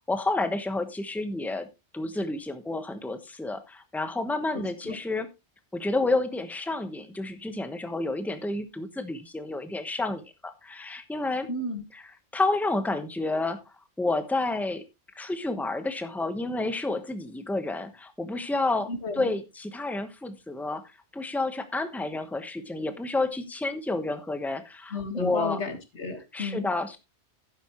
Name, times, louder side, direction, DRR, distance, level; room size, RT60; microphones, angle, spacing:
voice 1, 0.1-1.7 1.9-5.3 5.7-11.5 11.9-12.0 12.3-13.6 14.0-14.8 15.1-18.9 19.2-20.8 21.1-25.6 26.3-27.0, left 2 dB, ahead, 9 dB, 1.1 m, -30 dB
voice 2, 4.5-5.0 11.5-11.8 18.9-19.3 24.9-26.7, left 3 dB, 85° left, 7 dB, 2.4 m, -33 dB
12.0 x 9.4 x 3.1 m, 0.24 s
omnidirectional pair, 1.1 m